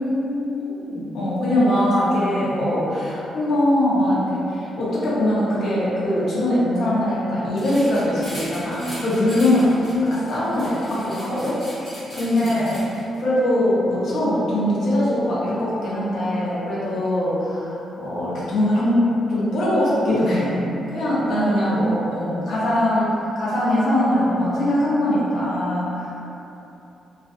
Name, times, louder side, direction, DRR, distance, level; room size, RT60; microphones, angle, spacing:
voice 1, 0.0-1.1 1.7-2.6 9.5-10.5 12.2-12.6 21.2-22.7, equal, 15° right, -12 dB, 0.9 m, -29 dB
voice 2, 0.6-9.7 10.1-11.6 12.1-12.8 13.2-19.0 19.3-20.6 20.9-26.1, left 1 dB, 60° left, -8 dB, 0.7 m, -22 dB
sound 1, 7.6-13.2, equal, 20° left, 1.1 m, -39 dB
2.4 x 2.3 x 2.3 m, 2.9 s
cardioid pair, 145°, 0 cm